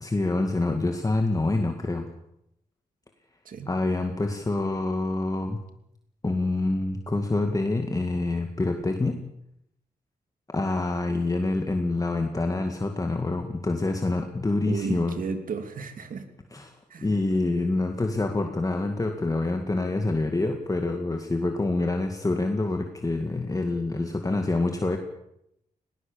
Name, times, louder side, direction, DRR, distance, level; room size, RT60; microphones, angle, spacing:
voice 1, 0.0-2.1 3.7-5.6 6.2-9.3 10.5-15.2 16.5-16.7 17.0-25.0, left 2 dB, 25° left, 4 dB, 2.1 m, -26 dB
voice 2, 14.7-16.2 16.9-17.1, right 5 dB, 65° right, 7 dB, 2.9 m, -33 dB
19.5 x 19.0 x 7.2 m, 0.80 s
cardioid pair, 80°, 15 cm